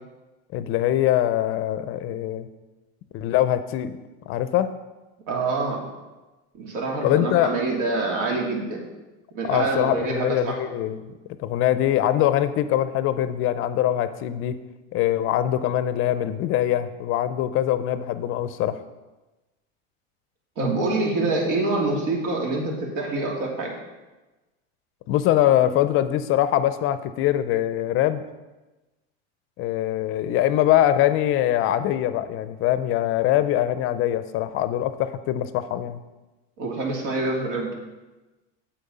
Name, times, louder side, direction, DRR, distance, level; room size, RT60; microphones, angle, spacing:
voice 1, 0.5-2.5 3.1-4.0 4.3-4.7 7.0-7.5 9.4-11.0 11.4-14.6 14.9-18.8 25.1-28.2 29.6-36.0, left 12 dB, 45° left, 13 dB, 0.6 m, -23 dB
voice 2, 5.3-5.9 6.6-8.8 9.3-10.7 20.6-23.8 36.6-37.7, right 3 dB, 70° right, 0 dB, 2.8 m, -26 dB
8.5 x 7.6 x 5.4 m, 1.1 s
supercardioid pair, 135°, 31 cm